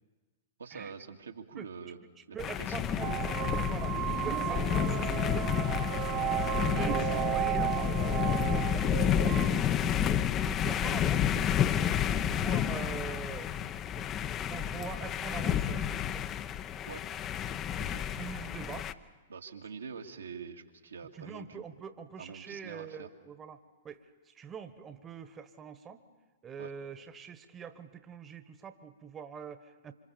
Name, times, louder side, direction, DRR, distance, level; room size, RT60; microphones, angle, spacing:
voice 1, 0.6-2.0 2.3-3.1 6.1-6.3 16.9-17.0 17.8-18.0 19.3-21.6 22.2-23.1 26.6-26.7, right 5 dB, 75° right, 3 dB, 2.2 m, -45 dB
voice 2, 2.3-5.5 6.6-8.9 9.2-11.3 11.7-14.1 14.5-16.2 18.1-18.9 21.1-26.0 26.4-29.9, right 6 dB, 20° right, 10 dB, 1.5 m, -44 dB
sound 1, 2.4-18.9, left 9 dB, 30° left, 0.9 m, -30 dB
sound 2, 3.0-9.6, right 13 dB, 35° right, 1.4 m, -33 dB
27.5 x 26.0 x 7.1 m, 1.2 s
figure-of-eight pair, 105°, 0 cm